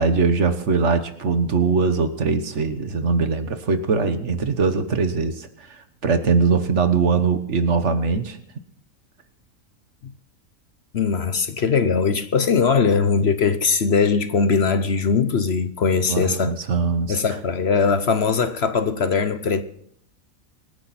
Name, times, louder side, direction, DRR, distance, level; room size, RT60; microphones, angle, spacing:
voice 1, 0.0-8.4 16.1-17.2, right 4 dB, 55° right, 1.5 m, -21 dB
voice 2, 10.9-16.6 17.1-19.6, left 5 dB, 55° left, 1.0 m, -20 dB
25.0 x 10.5 x 4.3 m
omnidirectional pair, 1.5 m